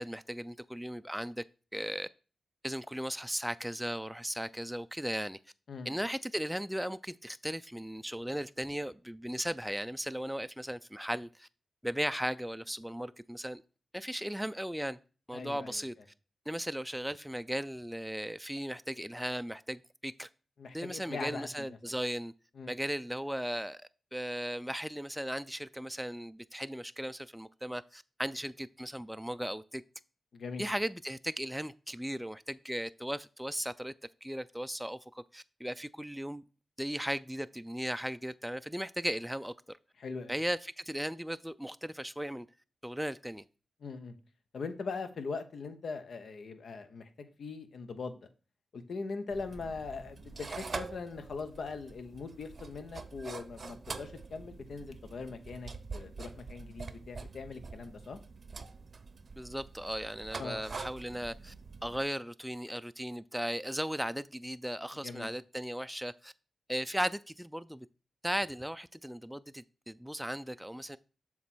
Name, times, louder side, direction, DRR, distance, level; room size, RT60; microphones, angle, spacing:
voice 1, 0.0-1.4 1.7-2.1 2.6-5.4 5.9-11.5 11.8-13.6 13.9-15.0 15.3-15.9 16.5-20.3 20.7-22.3 22.7-29.8 30.6-33.9 34.2-36.4 36.8-39.8 40.3-42.5 42.8-43.4 59.4-61.5 61.8-66.3 66.7-67.9 68.2-71.0, equal, 5° right, 0.4 m, -37 dB
voice 2, 15.3-15.8 20.6-21.8 22.6-22.7 30.3-30.7 40.0-40.3 43.8-44.1 44.5-47.1 47.4-48.2 48.7-58.2 60.4-60.6 65.0-65.3, left 4 dB, 75° left, 0.9 m, -41 dB
sound 1, 49.3-62.0, right 4 dB, 60° right, 0.7 m, -45 dB
7.3 x 3.2 x 6.1 m
cardioid pair, 50°, 0 cm